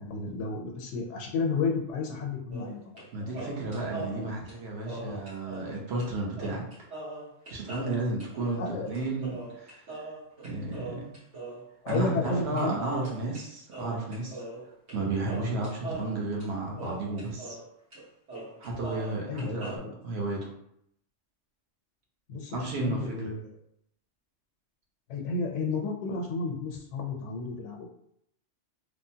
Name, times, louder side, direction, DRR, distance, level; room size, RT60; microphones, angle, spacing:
voice 1, 0.0-3.4 4.0-4.3 5.0-5.2 8.6-8.9 11.8-12.8 19.3-19.9 22.3-23.6 25.1-27.9, left 4 dB, 80° left, 1 dB, 0.9 m, -32 dB
sound 1, 2.5-3.1 3.3-5.7 6.0-6.1 6.4-12.0 12.2-13.4 13.7-15.0 15.3-17.6 17.9-18.0 18.3-19.8, right 2 dB, 80° right, 1.4 m, -41 dB
voice 2, 3.1-6.6 7.5-9.8 10.4-11.1 11.9-14.4 14.9-17.6 18.6-19.8 20.0-20.5 22.5-23.3, right 2 dB, 65° right, -2 dB, 1.0 m, -33 dB
3.2 x 2.1 x 2.7 m, 0.73 s
omnidirectional pair, 1.2 m